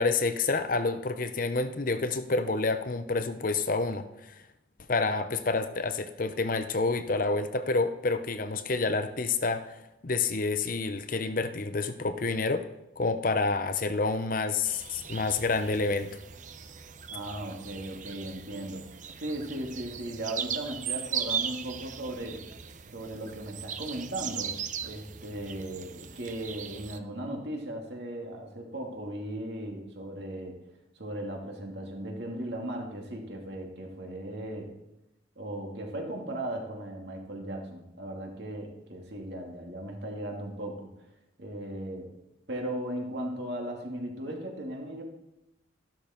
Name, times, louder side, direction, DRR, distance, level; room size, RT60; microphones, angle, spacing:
voice 1, 0.0-4.3 4.9-9.8 10.0-12.6 13.0-16.2, left 3 dB, 45° left, 10 dB, 0.7 m, -28 dB
sound 1, 14.7-27.0, right 7 dB, 40° right, 0.7 m, -38 dB
voice 2, 17.1-18.8 19.2-22.4 22.9-24.5 24.8-30.5 30.9-34.7 35.4-40.9 41.4-42.1 42.5-45.0, right 1 dB, 55° right, 1 dB, 2.6 m, -37 dB
13.5 x 12.0 x 4.5 m, 0.90 s
head